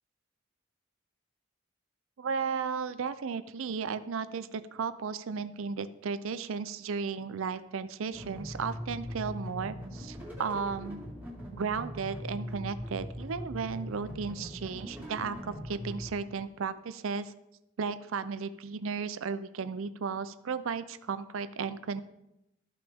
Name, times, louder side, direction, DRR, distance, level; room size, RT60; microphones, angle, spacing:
voice 1, 2.2-11.0 11.5-17.3 17.8-22.0, right 5 dB, 70° right, 13 dB, 0.5 m, -34 dB
sound 1, 8.1-16.1, equal, 10° right, 2.2 m, -41 dB
14.0 x 5.9 x 3.5 m, 0.86 s
head